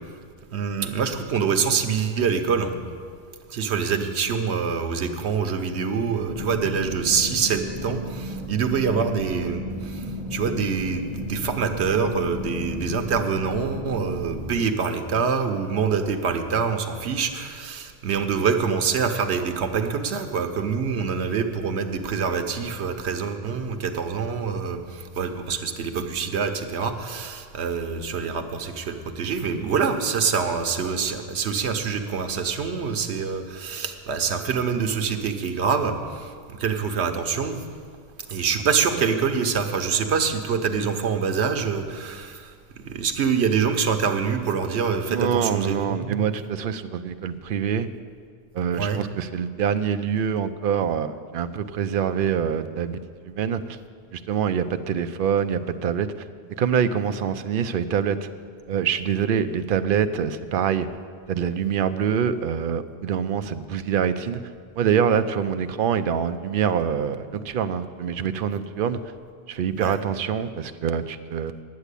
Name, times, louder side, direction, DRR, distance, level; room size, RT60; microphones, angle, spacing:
voice 1, 0.5-2.8 3.5-37.6 38.3-46.3 48.7-49.0 69.8-70.0, right 6 dB, 90° right, 7 dB, 1.1 m, -25 dB
sound 1, 6.3-14.6, left 1 dB, 40° right, 1.2 m, -34 dB
voice 2, 45.1-47.9 48.5-53.8 54.1-56.1 56.6-58.3 58.7-60.9 61.3-64.4 64.8-69.0 69.5-71.6, right 8 dB, 60° right, 10 dB, 0.7 m, -25 dB
10.5 x 8.1 x 8.3 m, 2.1 s
omnidirectional pair, 1.1 m